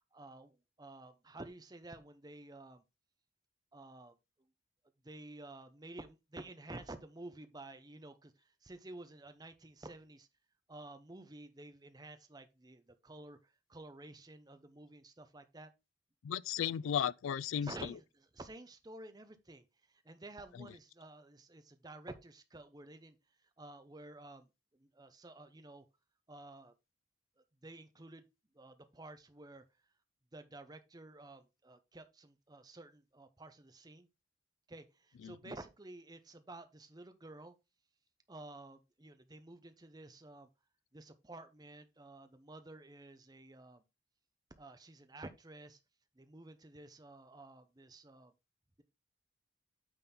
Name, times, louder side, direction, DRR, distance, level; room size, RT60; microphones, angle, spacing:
voice 1, 0.1-2.8 3.7-4.1 5.0-8.3 8.6-10.3 10.7-13.4 13.7-15.7 17.6-19.6 20.0-23.2 23.6-25.8 26.3-26.7 27.6-28.2 28.5-29.6 30.3-34.1 34.7-37.5 38.3-40.5 40.9-43.8 44.6-45.8 46.2-48.3, right 2 dB, 20° right, 0.7 m, -52 dB
voice 2, 16.2-17.9 20.6-20.7 35.2-35.4, left 9 dB, 85° left, 0.3 m, -35 dB
8.9 x 4.1 x 4.3 m
head